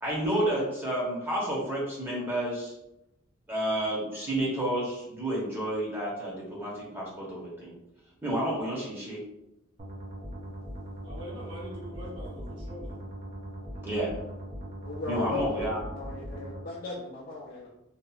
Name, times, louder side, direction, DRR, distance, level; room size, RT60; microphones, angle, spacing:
voice 1, 0.0-2.7 3.5-7.7 8.2-9.2 13.8-14.1 15.1-15.8, right 1 dB, 10° right, -5 dB, 0.8 m, -30 dB
sound 1, 9.8-16.6, equal, 30° right, 0.5 m, -40 dB
voice 2, 11.0-13.1, equal, 65° right, -6 dB, 1.0 m, -43 dB
voice 3, 14.8-17.7, left 3 dB, 45° left, -5 dB, 0.5 m, -36 dB
2.8 x 2.4 x 2.3 m, 0.86 s
head